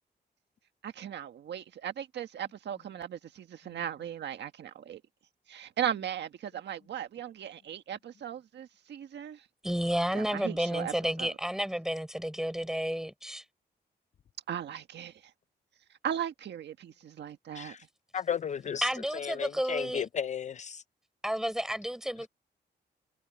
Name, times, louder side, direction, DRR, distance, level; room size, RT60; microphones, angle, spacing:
voice 1, 0.8-5.0 5.5-9.5 10.1-11.3 14.5-15.2 16.0-17.7, right 9 dB, 85° right, 1.6 m, -37 dB
voice 2, 9.6-13.4 18.8-20.1 21.2-22.3, equal, 5° right, 4.9 m, -31 dB
voice 3, 18.1-20.8, left 8 dB, 45° left, 0.4 m, -34 dB
wide cardioid pair, 135°, 18 cm